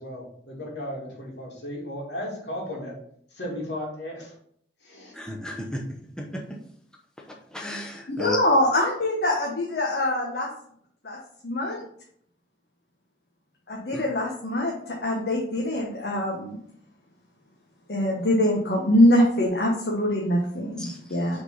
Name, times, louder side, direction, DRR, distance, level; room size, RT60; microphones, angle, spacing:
voice 1, 0.0-3.0 3.3-4.3 4.8-5.1, left 1 dB, 80° left, -2 dB, 2.5 m, -35 dB
voice 2, 5.1-5.8 6.2-6.4 7.5-8.4 13.9-14.0 20.8-21.0, left 2 dB, 5° left, -1 dB, 0.8 m, -33 dB
voice 3, 8.1-10.5 11.0-11.2 11.4-11.8 13.7-16.6 17.9-21.4, left 1 dB, 60° left, -2 dB, 1.1 m, -23 dB
5.6 x 3.9 x 5.6 m, 0.66 s
head